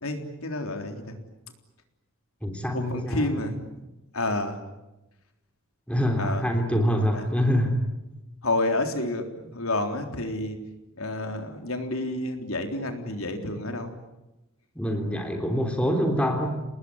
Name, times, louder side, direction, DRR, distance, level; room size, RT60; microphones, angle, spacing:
voice 1, 0.0-1.2 2.7-3.6 4.1-4.6 6.2-6.5 7.1-7.3 8.4-10.6 11.0-13.9, left 2 dB, 85° left, 5 dB, 3.7 m, -29 dB
voice 2, 2.4-3.5 5.9-7.8 14.7-16.6, equal, 5° left, 3 dB, 3.3 m, -25 dB
29.0 x 19.5 x 9.9 m, 0.98 s
head